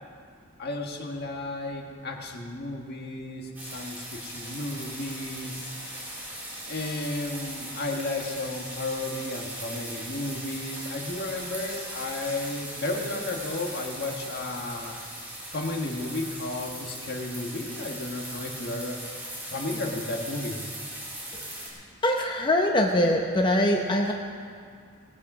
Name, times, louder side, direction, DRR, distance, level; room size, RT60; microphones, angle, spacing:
voice 1, 0.6-5.7 6.7-15.0 15.5-19.0 19.5-20.7, left 2 dB, 55° left, 2 dB, 1.5 m, -33 dB
sound 1, 3.5-21.7, right 1 dB, 10° right, 3.4 m, -39 dB
voice 2, 21.3-21.7 22.0-24.1, left 1 dB, 25° left, 1 dB, 0.8 m, -23 dB
18.5 x 8.3 x 6.1 m, 2.2 s
head